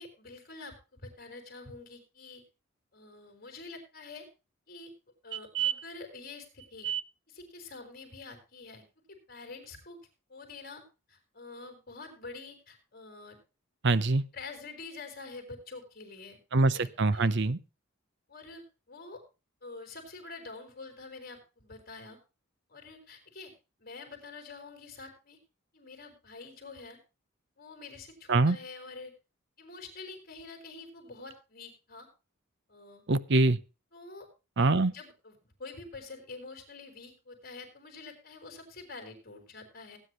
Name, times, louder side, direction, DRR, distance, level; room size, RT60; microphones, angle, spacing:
voice 1, 0.0-2.4 2.9-4.3 4.7-4.9 5.2-6.9 7.3-8.8 9.3-10.0 10.3-10.8 11.1-13.4 14.3-17.3 18.3-19.2 19.6-22.2 22.7-23.5 23.8-25.4 25.7-27.0 27.6-29.1 29.6-32.1 32.7-33.0 33.9-34.3 34.8-40.0, left 3 dB, 45° left, 4 dB, 4.8 m, -47 dB
voice 2, 13.8-14.2 16.5-17.6 28.3-28.6 33.1-33.6 34.6-34.9, right 3 dB, 60° right, 16 dB, 0.8 m, -24 dB
18.0 x 9.8 x 3.0 m, 0.30 s
head